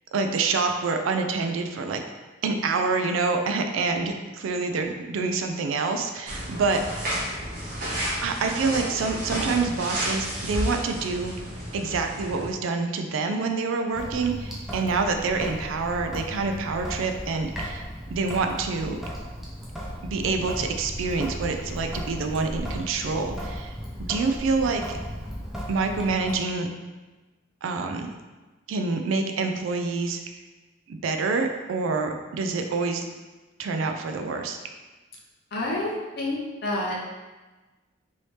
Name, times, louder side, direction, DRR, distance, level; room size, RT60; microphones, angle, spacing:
voice 1, 0.1-2.0 2.4-7.2 8.2-11.3 11.7-17.8 18.1-19.0 20.0-25.0 25.7-26.7 27.6-28.1 28.7-30.2 30.9-33.0 33.6-34.6, right 4 dB, 75° right, 5 dB, 0.3 m, -27 dB
sound 1, 6.3-12.5, equal, 45° right, 0.9 m, -31 dB
Sink (filling or washing) / Drip, 13.9-26.4, equal, ahead, 0.4 m, -36 dB
voice 2, 35.5-36.4 36.6-37.0, left 1 dB, 50° left, -4 dB, 0.5 m, -28 dB
3.1 x 2.7 x 3.2 m, 1.2 s
head